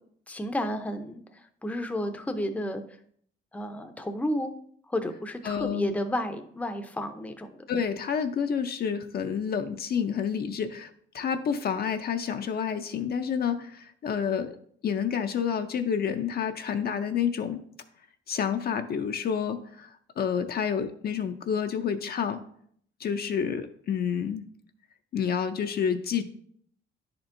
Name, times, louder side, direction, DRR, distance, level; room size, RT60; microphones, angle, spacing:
voice 1, 0.3-1.2 1.6-2.8 3.5-4.5 4.9-7.5, left 1 dB, 5° left, 7 dB, 0.6 m, -31 dB
voice 2, 5.4-5.9 7.7-10.9 11.1-14.6 14.8-17.6 18.3-22.4 23.0-24.4 25.1-26.2, left 7 dB, 50° left, 7 dB, 0.5 m, -29 dB
9.8 x 4.4 x 2.6 m, 0.63 s
cardioid pair, 90°, 20 cm